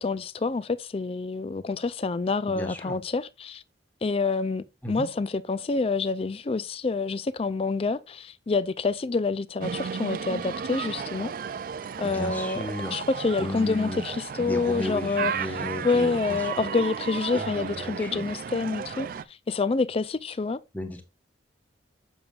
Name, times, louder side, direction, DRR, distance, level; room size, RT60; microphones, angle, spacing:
voice 1, 0.0-3.6 4.0-11.3 12.0-12.6 12.9-15.3 15.8-20.6, left 4 dB, 30° left, 0.3 m, -27 dB
voice 2, 2.5-3.0 4.8-5.1 12.0-13.0 13.4-14.0 14.4-16.6 17.3-18.3 20.7-21.0, left 1 dB, 10° left, 1.2 m, -34 dB
sound 1, 9.6-19.2, right 6 dB, 50° right, 0.3 m, -34 dB
7.0 x 6.9 x 2.4 m
head